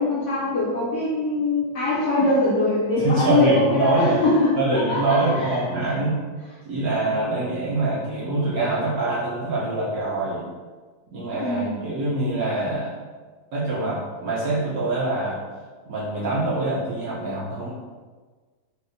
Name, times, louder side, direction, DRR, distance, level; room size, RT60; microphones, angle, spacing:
voice 1, 0.0-4.5 4.9-5.6 11.4-11.8, left 2 dB, 65° left, -9 dB, 0.7 m, -22 dB
voice 2, 3.0-4.2 4.6-6.2 6.6-10.5 11.1-12.9 13.5-15.4 15.9-17.7, right 2 dB, 65° right, -7 dB, 0.9 m, -24 dB
4.2 x 2.0 x 2.6 m, 1.4 s
omnidirectional pair, 2.0 m